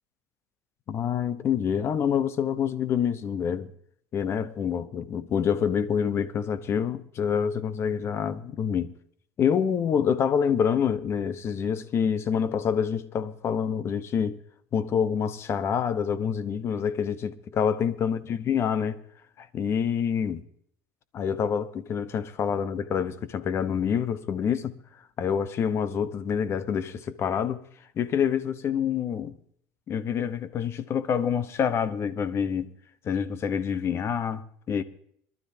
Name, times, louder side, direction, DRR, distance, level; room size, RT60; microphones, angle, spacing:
voice 1, 0.9-3.7 4.1-8.9 9.4-14.4 14.7-19.0 19.4-20.4 21.1-24.7 25.2-27.6 28.0-29.4 29.9-32.7 33.0-34.8, left 7 dB, 40° left, 1.0 m, -27 dB
23.0 x 12.5 x 2.8 m
supercardioid pair, 120°, 7 cm